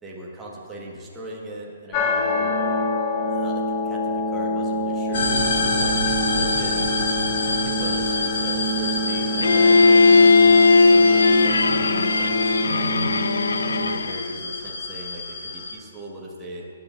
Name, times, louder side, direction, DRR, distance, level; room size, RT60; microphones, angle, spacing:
voice 1, 0.0-2.6 3.3-6.9 7.4-13.1 13.7-16.7, right 1 dB, 10° right, -4 dB, 1.6 m, -39 dB
sound 1, 1.9-13.9, equal, 30° left, 1.1 m, -26 dB
sound 2, 5.1-15.7, left 3 dB, 60° left, 2.3 m, -28 dB
Bowed string instrument, 9.4-14.3, left 4 dB, 75° left, 0.4 m, -17 dB
21.5 x 7.8 x 2.6 m, 2.4 s
figure-of-eight pair, 130°, 0 cm